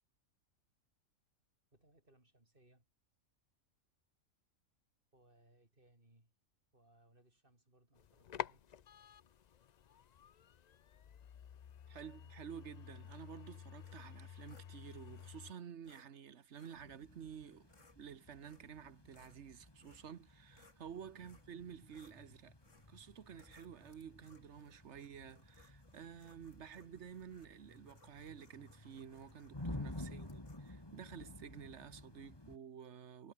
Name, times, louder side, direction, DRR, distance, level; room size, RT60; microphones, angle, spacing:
voice 1, 1.7-2.9 5.1-6.3 6.7-8.7 21.2-21.4 30.0-30.4, right 1 dB, 40° right, 5.7 m, -68 dB
sound 1, 7.9-15.5, left 8 dB, 55° left, 0.5 m, -50 dB
voice 2, 11.9-17.7 18.0-22.5 22.9-33.3, right 8 dB, 65° right, 1.3 m, -52 dB
sound 2, 13.8-14.7 15.1-15.3 15.8-16.1 16.5-16.8 17.5-18.0 18.4-18.8 19.1-20.8 21.2-21.5 21.9-22.2 22.6-22.9 23.3-30.7, left 3 dB, 70° left, 3.6 m, -68 dB
sound 3, 16.8-32.6, left 1 dB, 20° left, 2.7 m, -52 dB
omnidirectional pair, 1.3 m